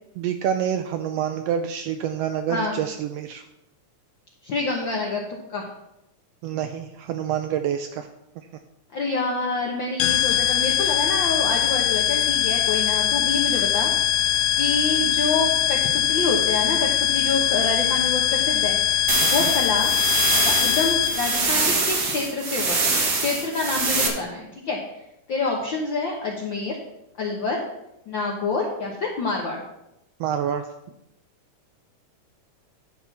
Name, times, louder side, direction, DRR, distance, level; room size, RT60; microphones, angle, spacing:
voice 1, 0.2-3.4 6.4-8.1 8.4-8.5 19.2-19.5 30.2-30.7, right 9 dB, 85° right, 8 dB, 1.4 m, -27 dB
voice 2, 4.4-5.2 5.5-5.7 8.9-13.9 14.6-19.0 19.3-19.9 20.4-24.8 25.3-26.8 27.2-27.6 28.1-29.6, left 3 dB, 60° left, -1 dB, 1.3 m, -27 dB
sound 1, 10.0-21.4, left 11 dB, 85° left, 2.4 m, -22 dB
sound 2, 19.1-24.1, right 3 dB, 45° right, 1.2 m, -24 dB
11.0 x 4.4 x 6.9 m, 0.87 s
omnidirectional pair, 3.4 m